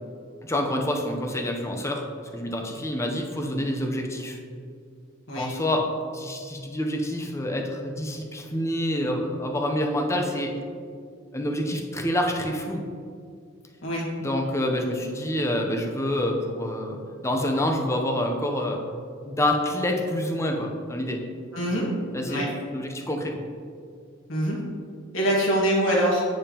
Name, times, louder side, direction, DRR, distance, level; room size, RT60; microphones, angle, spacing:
voice 1, 0.4-2.0 2.3-4.4 5.3-5.9 6.1-10.5 11.3-12.8 14.2-18.8 19.2-21.2 22.1-23.4, left 1 dB, 15° left, 2 dB, 0.6 m, -27 dB
voice 2, 21.5-21.9 22.2-22.4 24.3-24.6 25.1-26.2, equal, 85° left, -4 dB, 1.7 m, -24 dB
8.7 x 5.2 x 2.9 m, 2.2 s
head